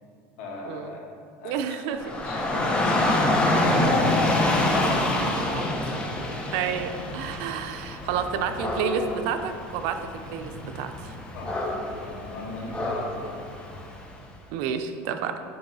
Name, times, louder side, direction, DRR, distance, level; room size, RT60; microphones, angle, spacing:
voice 1, 0.4-1.0 1.4-1.6 2.2-5.7 11.3-13.6, left 1 dB, 85° left, -3 dB, 1.8 m, -36 dB
voice 2, 1.4-2.0 6.5-11.1 14.5-15.4, right 7 dB, 70° right, 7 dB, 0.6 m, -30 dB
Dog / Rain, 2.0-14.1, left 1 dB, 15° left, 0.9 m, -27 dB
8.8 x 3.1 x 5.5 m, 2.3 s
supercardioid pair, 135°, 7 cm